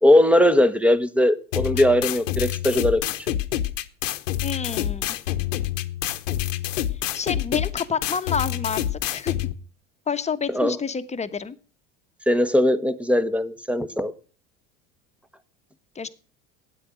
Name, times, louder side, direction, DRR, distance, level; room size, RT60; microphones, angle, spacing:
voice 1, 0.0-3.0 10.5-10.8 12.3-14.1, left 1 dB, 5° right, 1.2 m, -19 dB
sound 1, 1.5-9.5, left 13 dB, 75° left, 1.1 m, -27 dB
voice 2, 4.4-5.2 7.1-9.3 10.1-11.5 15.9-16.1, left 6 dB, 15° left, 1.2 m, -28 dB
13.0 x 9.6 x 6.2 m
hypercardioid pair, 80°, 39 cm